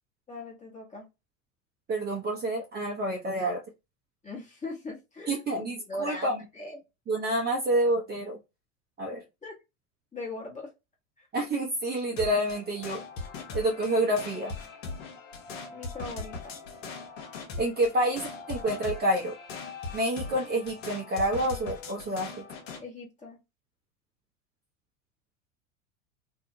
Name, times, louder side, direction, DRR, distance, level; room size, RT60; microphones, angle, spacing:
voice 1, 0.3-1.1 4.2-6.8 9.4-9.6 10.1-10.7 11.2-11.3 15.7-16.6 22.8-23.4, left 2 dB, 20° left, -1 dB, 1.3 m, -40 dB
voice 2, 1.9-3.6 5.3-6.3 7.1-8.4 9.0-9.2 11.3-13.0 13.5-14.5 17.6-19.4 19.9-22.5, right 1 dB, 25° right, 0 dB, 0.8 m, -28 dB
sound 1, 12.2-22.8, left 4 dB, 65° left, 1.0 m, -40 dB
2.8 x 2.4 x 2.7 m, 0.25 s
hypercardioid pair, 90°, 40 cm